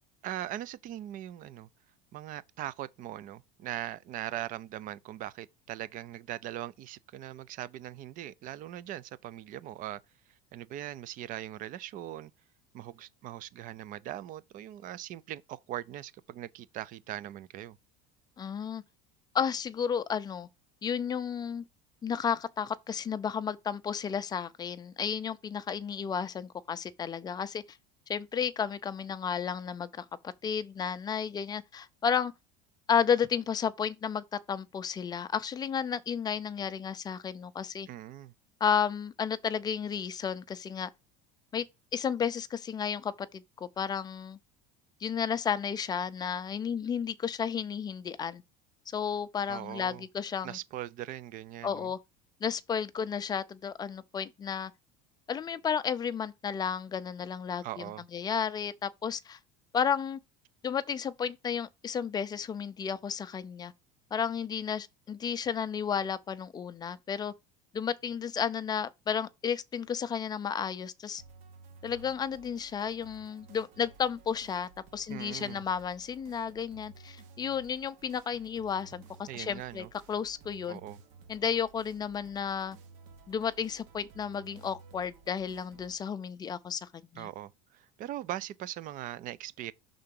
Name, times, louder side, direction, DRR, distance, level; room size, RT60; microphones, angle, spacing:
voice 1, 0.2-1.7 2.1-10.0 10.5-12.3 12.7-17.8 37.9-38.3 49.5-50.0 50.4-51.9 57.6-58.0 75.1-75.6 79.3-79.9 80.7-81.0 87.1-89.7, right 13 dB, 40° right, 0.4 m, -40 dB
voice 2, 18.4-18.8 19.3-20.5 20.8-21.6 22.0-27.6 28.1-30.0 30.4-32.3 32.9-37.9 38.6-40.9 41.5-41.6 41.9-44.4 45.0-48.4 48.9-50.6 51.6-52.0 52.4-54.7 55.3-57.8 58.1-59.4 59.7-60.2 60.6-63.7 64.1-67.3 67.7-71.2 71.8-80.8 81.3-82.8 83.3-87.3, left 7 dB, 20° left, 0.4 m, -32 dB
sound 1, 71.2-86.0, right 4 dB, 60° right, 1.1 m, -55 dB
5.8 x 3.8 x 5.3 m
cardioid pair, 145°, 21 cm